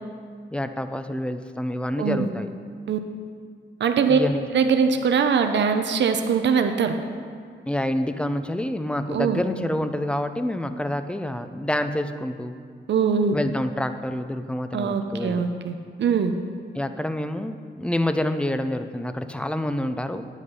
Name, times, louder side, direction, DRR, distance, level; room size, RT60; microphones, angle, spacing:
voice 1, 0.5-2.5 4.1-4.5 7.7-12.5 13.3-15.5 16.7-20.3, left 1 dB, 5° left, 9 dB, 0.5 m, -27 dB
voice 2, 2.0-2.3 2.9-3.0 3.8-4.2 4.5-6.9 9.1-9.4 12.9-13.4 14.7-16.3, right 6 dB, 65° right, 6 dB, 0.7 m, -22 dB
9.8 x 8.2 x 5.4 m, 2.1 s
wide cardioid pair, 105°, 20 cm